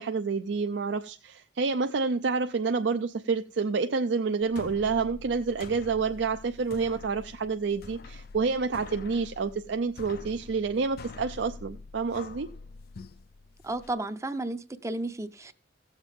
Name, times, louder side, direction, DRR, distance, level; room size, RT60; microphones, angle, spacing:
voice 1, 0.0-12.5, right 4 dB, 70° right, 0.5 m, -28 dB
sound 1, 4.4-13.9, left 4 dB, 55° left, 0.4 m, -46 dB
voice 2, 13.6-15.5, right 2 dB, 15° right, 0.5 m, -33 dB
16.0 x 7.3 x 3.6 m
head